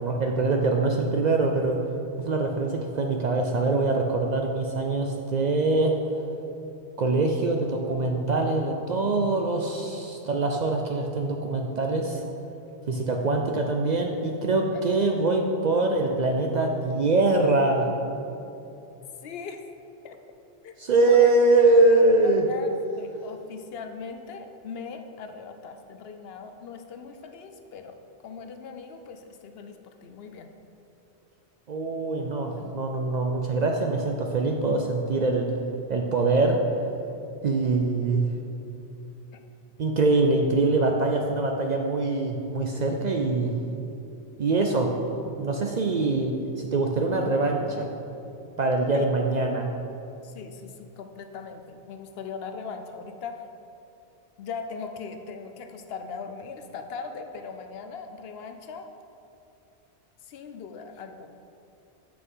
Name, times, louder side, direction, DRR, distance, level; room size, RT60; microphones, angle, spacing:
voice 1, 0.0-1.8 2.2-6.0 7.0-12.2 12.9-17.9 20.8-22.5 31.7-35.5 35.9-36.6 37.4-38.2 39.8-43.5 44.4-44.9 45.4-47.9 48.6-49.7, right 3 dB, 55° right, 2 dB, 0.5 m, -23 dB
voice 2, 19.2-19.6 20.0-20.2 20.6-21.4 22.5-28.0 28.2-30.5 32.6-32.7 39.3-39.4 48.9-49.1 50.2-53.4 54.4-58.9 60.3-61.3, left 5 dB, 70° left, 6 dB, 0.7 m, -39 dB
6.0 x 5.8 x 5.5 m, 2.8 s
omnidirectional pair, 1.1 m